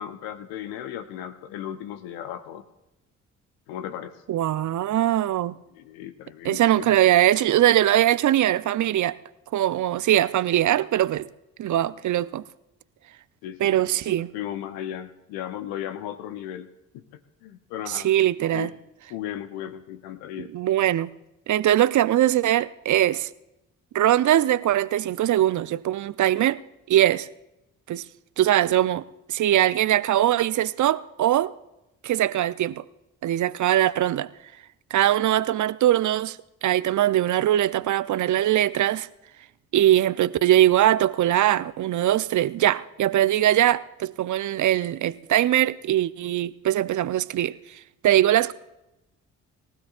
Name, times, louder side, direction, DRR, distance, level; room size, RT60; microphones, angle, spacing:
voice 1, 0.0-2.6 3.7-4.2 5.7-7.0 13.4-18.1 18.5-18.7 19.1-20.5, left 11 dB, 70° left, 0.8 m, -36 dB
voice 2, 4.3-5.5 6.4-9.2 9.5-11.3 11.6-12.4 13.6-14.3 17.9-18.7 20.5-21.1 21.5-23.3 23.9-26.6 26.9-27.3 27.9-28.0 28.4-29.0 29.3-31.5 32.0-32.8 33.2-34.3 34.9-39.1 39.7-47.6 48.0-48.5, right 12 dB, 50° right, 0.6 m, -21 dB
23.0 x 15.0 x 2.5 m
hypercardioid pair, 40°, 39 cm